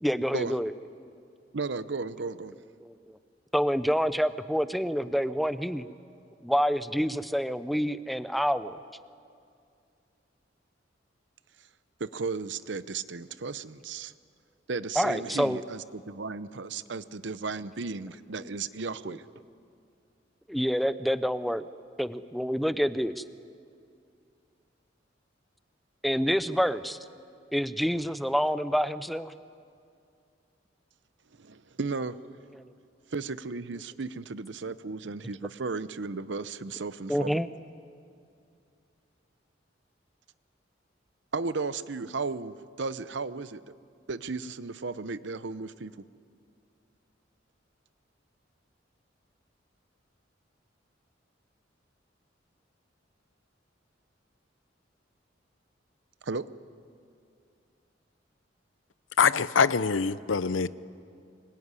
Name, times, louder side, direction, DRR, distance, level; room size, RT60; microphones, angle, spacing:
voice 1, 0.0-0.7 2.8-3.2 3.5-5.9 6.4-8.8 15.0-15.6 18.4-18.5 19.1-19.2 20.5-21.6 22.0-23.2 26.0-27.0 27.5-29.3 32.6-32.7 37.1-37.5, equal, ahead, 13 dB, 0.6 m, -27 dB
voice 2, 1.5-2.5 12.0-14.1 14.7-19.2 31.4-32.2 33.1-37.4 41.3-43.6 44.1-46.0 56.2-56.5, right 4 dB, 65° right, 14 dB, 0.8 m, -35 dB
voice 3, 59.2-60.7, left 5 dB, 90° left, 16 dB, 0.7 m, -24 dB
25.5 x 22.0 x 9.8 m, 2.4 s
head